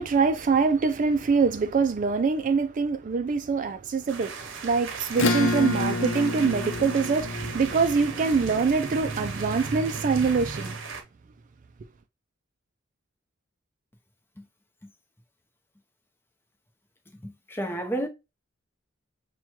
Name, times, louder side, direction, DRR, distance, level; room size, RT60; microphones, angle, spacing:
voice 1, 0.0-10.8, right 5 dB, 40° right, 0.3 m, -24 dB
sound 1, 4.1-11.0, right 5 dB, 70° right, 0.8 m, -38 dB
Acoustic guitar / Strum, 5.1-10.1, left 2 dB, 75° left, 0.7 m, -29 dB
voice 2, 17.2-18.1, right 1 dB, 10° left, 0.7 m, -31 dB
6.0 x 2.3 x 2.9 m
head